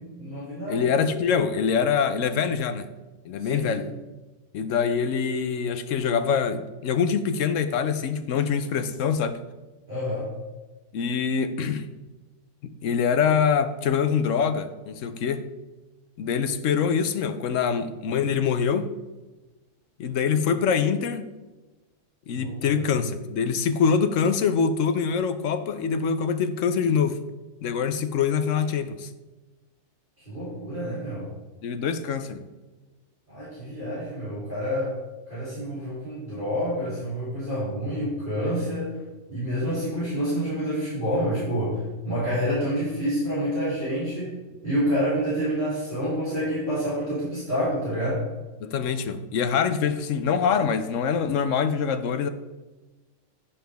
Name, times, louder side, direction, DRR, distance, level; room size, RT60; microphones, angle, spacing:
voice 1, 0.0-0.9 3.4-3.9 9.9-10.3 22.3-22.9 30.3-31.3 33.3-35.0 35.3-39.0 39.3-44.3 44.6-48.2, equal, 40° right, -11 dB, 3.4 m, -28 dB
voice 2, 0.7-2.9 3.2-3.9 4.5-9.4 10.9-11.9 12.6-15.5 16.2-18.9 20.0-21.3 22.3-27.2 27.6-29.1 31.6-32.4 48.6-52.3, left 6 dB, 80° left, 10 dB, 1.1 m, -24 dB
9.4 x 7.1 x 3.4 m, 1.2 s
omnidirectional pair, 1.3 m